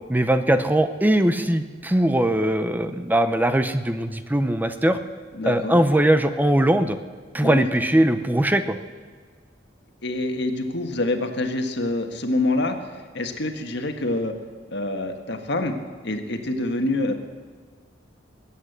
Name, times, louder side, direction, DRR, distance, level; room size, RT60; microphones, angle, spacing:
voice 1, 0.1-5.0 5.4-7.0 7.3-8.8, right 1 dB, 10° right, 10 dB, 0.6 m, -20 dB
voice 2, 5.3-5.8 7.4-7.7 10.0-14.3 14.7-15.8 16.0-17.1, left 2 dB, 65° left, 5 dB, 1.6 m, -26 dB
21.0 x 8.5 x 8.1 m, 1.5 s
head